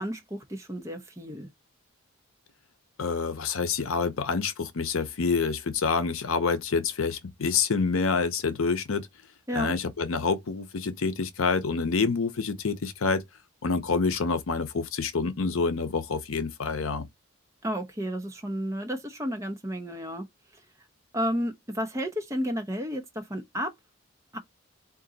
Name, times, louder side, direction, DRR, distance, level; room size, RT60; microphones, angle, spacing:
voice 1, 0.0-1.5 9.5-9.7 17.6-20.3 21.1-23.7 24.3-24.4, equal, 15° right, 0.7 m, -32 dB
voice 2, 3.0-9.1 9.5-13.2 13.6-17.1, left 4 dB, 80° left, 0.7 m, -27 dB
3.8 x 2.6 x 3.9 m
head